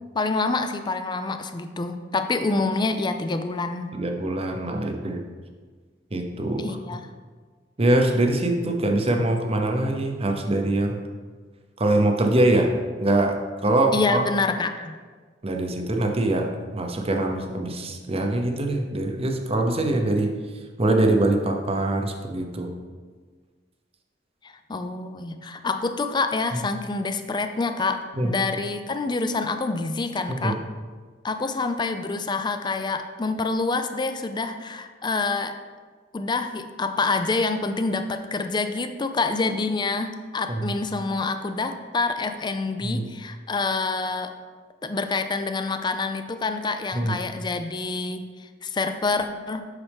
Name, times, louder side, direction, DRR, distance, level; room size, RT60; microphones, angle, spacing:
voice 1, 0.1-4.0 6.6-7.0 13.9-15.0 24.4-30.6 31.2-35.5 36.1-44.3 44.8-48.3 48.6-49.6, left 3 dB, 25° left, 8 dB, 0.4 m, -27 dB
voice 2, 3.9-5.2 6.1-6.8 7.8-11.0 11.8-12.7 13.0-14.2 15.4-20.3 20.8-22.7 28.1-28.3 30.3-30.6 40.5-40.7 42.8-43.0 46.9-47.2, right 1 dB, 35° right, 4 dB, 0.8 m, -23 dB
8.1 x 6.1 x 3.5 m, 1.5 s
head